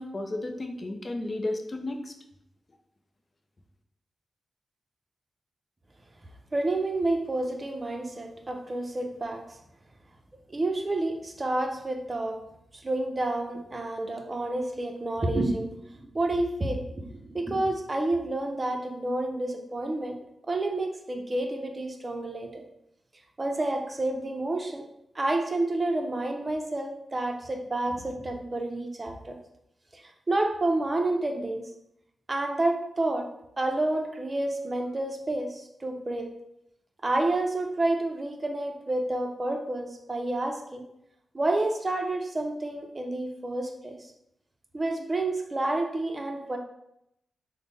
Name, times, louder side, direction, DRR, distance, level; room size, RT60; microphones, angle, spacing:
voice 1, 0.0-2.1, left 2 dB, 40° left, 5 dB, 0.5 m, -33 dB
voice 2, 6.5-9.4 10.5-12.4 12.7-20.1 20.5-22.6 23.4-24.8 25.1-29.3 30.3-31.6 32.3-33.3 33.6-36.3 37.0-40.8 41.3-44.1 44.7-46.6, right 2 dB, 35° right, 3 dB, 0.6 m, -29 dB
3.4 x 2.1 x 3.9 m, 0.79 s
cardioid pair, 55°, 0 cm